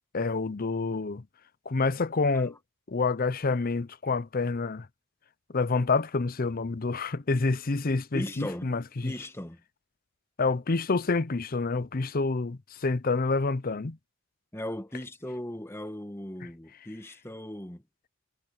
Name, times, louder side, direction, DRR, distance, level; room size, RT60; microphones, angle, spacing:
voice 1, 0.1-1.2 1.7-2.6 2.9-4.9 5.5-9.1 10.4-14.0, left 3 dB, 40° left, 0.7 m, -28 dB
voice 2, 8.1-8.7 9.0-9.6 14.5-17.8, left 1 dB, 10° left, 1.3 m, -37 dB
head